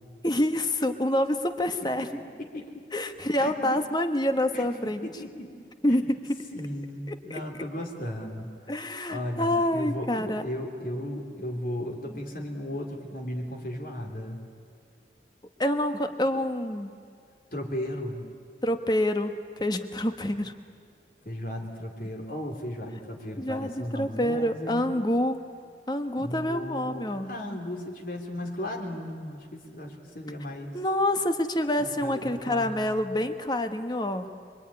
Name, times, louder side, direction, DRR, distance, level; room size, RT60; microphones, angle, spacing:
voice 1, 0.2-2.1 2.9-5.1 5.8-6.4 7.1-7.4 8.7-10.4 15.6-16.9 18.6-20.5 23.4-25.4 25.9-27.3 30.7-34.3, left 1 dB, 25° left, 7 dB, 1.4 m, -27 dB
voice 2, 2.4-2.8 3.4-3.8 4.5-5.5 5.9-6.1 6.5-8.5 9.1-14.4 17.5-18.2 21.2-25.0 26.2-30.7 31.8-33.0, left 1 dB, 50° left, 1 dB, 3.3 m, -36 dB
25.5 x 24.0 x 9.8 m, 2.2 s
head